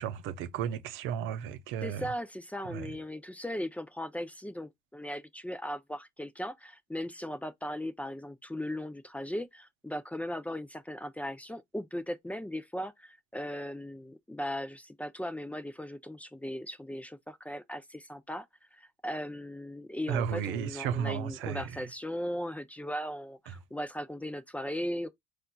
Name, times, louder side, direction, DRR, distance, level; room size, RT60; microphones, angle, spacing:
voice 1, 0.0-2.1 2.7-2.9 20.1-21.7 23.5-23.6, right 8 dB, 80° right, 0.6 m, -34 dB
voice 2, 1.8-18.5 18.7-25.1, equal, 5° left, 0.4 m, -38 dB
4.2 x 2.4 x 2.2 m
cardioid pair, 100°, 20 cm